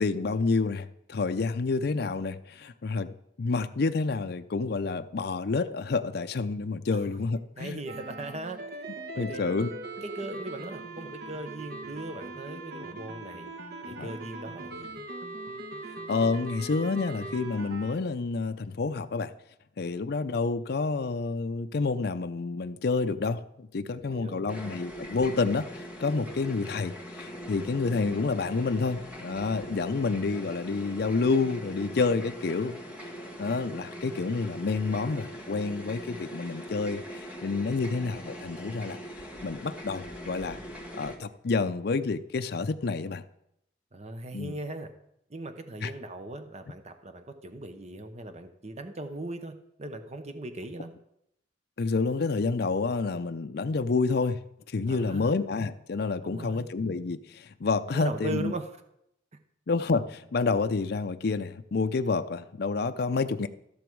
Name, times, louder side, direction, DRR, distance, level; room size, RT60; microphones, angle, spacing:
voice 1, 0.0-7.8 9.2-9.7 14.0-14.1 16.1-19.3 19.8-32.8 33.4-39.0 39.4-40.6 40.9-43.2 44.3-44.5 45.8-45.9 51.8-54.4 54.7-58.5 59.7-63.5, left 4 dB, 60° left, 9 dB, 0.5 m, -29 dB
voice 2, 6.9-7.3 7.6-8.6 9.1-9.4 10.0-13.5 13.8-15.0 23.9-24.5 43.9-44.9 45.3-50.9 54.9-55.3 56.2-56.7 57.9-58.7, right 2 dB, 35° right, 8 dB, 0.9 m, -39 dB
sound 1, 7.9-17.9, right 2 dB, 60° right, 1.1 m, -40 dB
sound 2, 24.5-41.2, equal, 10° right, 1.8 m, -41 dB
14.0 x 6.9 x 4.6 m, 0.78 s
head